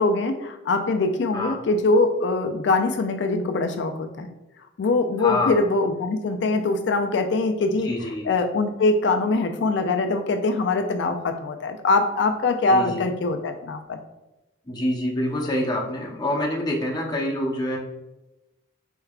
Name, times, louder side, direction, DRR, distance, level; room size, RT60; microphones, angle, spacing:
voice 1, 0.0-4.3 4.8-7.9 8.3-14.0, left 3 dB, 65° left, 6 dB, 0.3 m, -23 dB
voice 2, 5.2-5.6 7.8-8.3 12.7-13.0 14.7-17.8, left 1 dB, 20° left, -3 dB, 0.7 m, -26 dB
4.5 x 3.3 x 2.3 m, 1.0 s
head